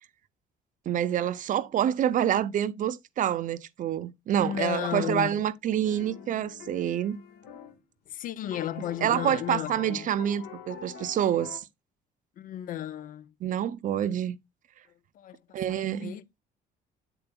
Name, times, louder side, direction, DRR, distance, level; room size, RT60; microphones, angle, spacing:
voice 1, 0.9-7.2 9.0-11.6 13.4-14.4 15.5-16.2, right 10 dB, 50° right, 0.6 m, -27 dB
voice 2, 4.4-5.4 8.1-10.1 12.4-13.3 15.1-16.2, left 12 dB, 55° left, 0.5 m, -34 dB
sound 1, 5.8-7.8 8.1-8.2 8.5-11.6, left 6 dB, 70° left, 1.3 m, -44 dB
7.9 x 6.9 x 2.2 m
cardioid pair, 110°, 17 cm